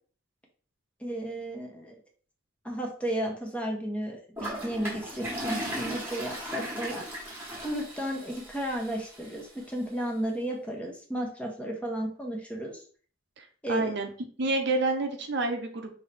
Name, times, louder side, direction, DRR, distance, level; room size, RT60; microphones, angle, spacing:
voice 1, 1.0-2.0 2.6-7.0 7.6-12.8 13.6-13.9, right 1 dB, 5° left, 0 dB, 0.9 m, -33 dB
Toilet flush, 4.4-9.4, right 1 dB, 10° right, 1.3 m, -37 dB
voice 2, 13.4-14.1 14.4-15.9, right 2 dB, 60° right, 5 dB, 0.7 m, -29 dB
5.4 x 2.9 x 3.4 m, 0.44 s
head